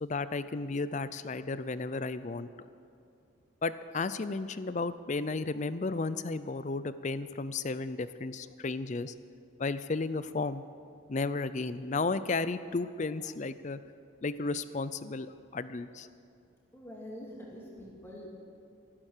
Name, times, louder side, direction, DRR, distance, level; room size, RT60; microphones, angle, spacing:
voice 1, 0.0-2.5 3.6-9.1 9.6-10.6 11.1-13.8 14.2-16.1, left 3 dB, 35° left, 14 dB, 0.5 m, -33 dB
voice 2, 16.7-18.3, equal, 10° left, -4 dB, 2.8 m, -45 dB
15.5 x 12.0 x 6.7 m, 2.4 s
head